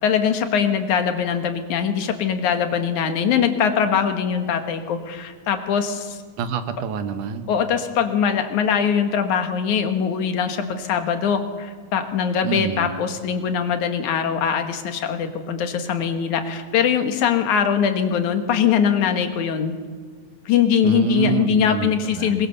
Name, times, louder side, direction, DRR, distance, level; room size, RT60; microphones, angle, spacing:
voice 1, 0.0-6.2 7.5-19.7 20.5-22.5, left 7 dB, 75° left, 7 dB, 2.8 m, -22 dB
voice 2, 6.4-7.5 12.4-12.9 20.8-22.5, right 7 dB, 85° right, 9 dB, 2.7 m, -27 dB
22.0 x 21.0 x 6.8 m, 1.5 s
omnidirectional pair, 3.5 m